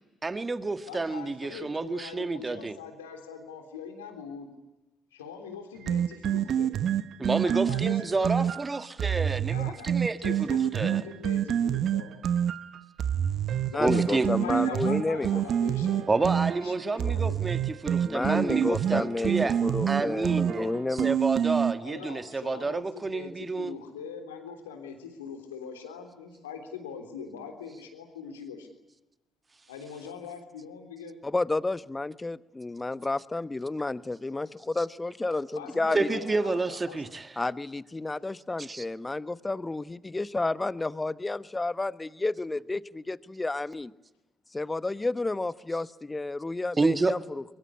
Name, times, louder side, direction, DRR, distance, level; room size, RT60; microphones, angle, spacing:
voice 1, 0.2-2.8 7.2-11.0 13.8-14.3 16.1-19.6 19.9-23.8 35.9-37.4 38.6-38.9 46.8-47.2, right 3 dB, 30° right, 1.9 m, -29 dB
voice 2, 0.9-4.5 5.1-6.7 7.4-8.5 9.5-12.1 13.6-17.5 21.8-28.7 29.7-31.2 35.5-37.1, left 6 dB, 85° left, 3.5 m, -42 dB
sound 1, 5.9-21.7, right 9 dB, 60° right, 1.0 m, -27 dB
voice 3, 13.7-15.4 17.0-17.1 18.0-21.2 31.2-36.1 37.4-43.9 44.5-47.4, left 2 dB, 20° left, 1.1 m, -31 dB
23.0 x 22.5 x 9.8 m
hypercardioid pair, 45°, 0 cm